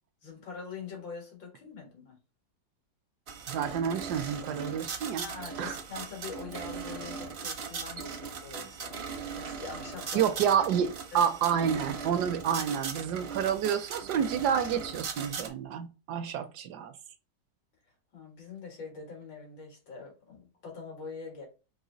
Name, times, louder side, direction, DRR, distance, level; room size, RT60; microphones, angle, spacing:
voice 1, 0.2-2.2 5.2-9.1 9.3-10.3 11.1-11.3 18.1-21.5, left 4 dB, 85° left, 2.6 m, -43 dB
sound 1, 3.3-15.5, right 5 dB, 55° right, 0.7 m, -39 dB
voice 2, 3.5-5.3 5.6-5.8 10.1-16.9, right 8 dB, 75° right, 1.0 m, -29 dB
4.7 x 2.8 x 3.8 m
omnidirectional pair, 1.9 m